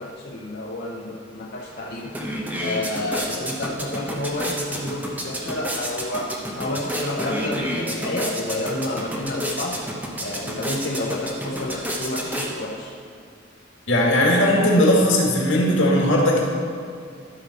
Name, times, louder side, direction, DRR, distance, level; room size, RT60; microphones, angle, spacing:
voice 1, 0.0-2.2 2.6-9.8 10.2-12.9, left 1 dB, 55° left, -3 dB, 0.7 m, -29 dB
sound 1, 1.6-1.7 2.0-12.9, equal, 10° right, 0.8 m, -30 dB
voice 2, 13.9-16.4, left 1 dB, 85° left, -2 dB, 1.8 m, -18 dB
12.5 x 5.5 x 4.1 m, 2.3 s
head